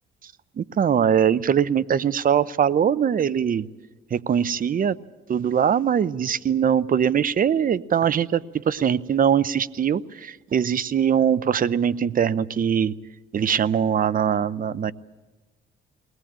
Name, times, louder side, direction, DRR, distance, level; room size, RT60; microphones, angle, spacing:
voice 1, 0.6-3.7 4.1-5.0 5.3-12.9 13.3-14.9, right 8 dB, 45° right, 17 dB, 0.7 m, -22 dB
21.5 x 19.0 x 8.8 m, 1.2 s
cardioid pair, 90°, 20 cm